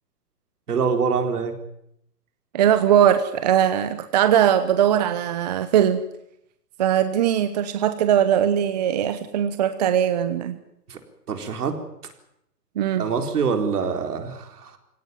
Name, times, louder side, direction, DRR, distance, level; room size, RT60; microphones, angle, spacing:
voice 1, 0.7-1.6 10.9-11.0 11.3-11.7 13.0-14.8, right 5 dB, 65° right, 6 dB, 4.4 m, -25 dB
voice 2, 2.5-6.0 6.8-10.6 12.8-13.1, right 10 dB, 25° right, 11 dB, 0.9 m, -20 dB
24.0 x 17.5 x 9.5 m, 0.78 s
hypercardioid pair, 160°, 49 cm